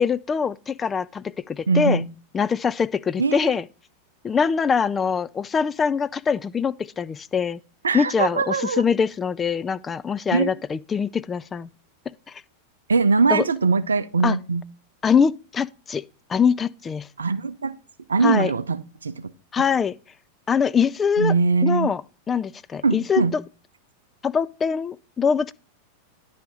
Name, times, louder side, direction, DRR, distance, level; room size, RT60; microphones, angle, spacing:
voice 1, 0.0-2.0 2.3-3.6 4.2-7.6 7.9-11.7 12.3-12.4 13.3-13.4 14.2-14.4 15.0-16.0 16.3-17.1 18.2-18.5 19.5-19.9 20.5-21.3 21.6-22.0 22.3-23.4 24.2-25.5, left 6 dB, 20° left, 0.3 m, -23 dB
voice 2, 1.7-2.1 3.2-3.5 7.8-8.8 10.3-10.5 12.9-14.6 17.2-17.8 18.1-19.3 21.2-21.9 22.8-23.3, right 4 dB, 75° right, 0.5 m, -21 dB
10.5 x 3.5 x 6.3 m
figure-of-eight pair, 90°, 0 cm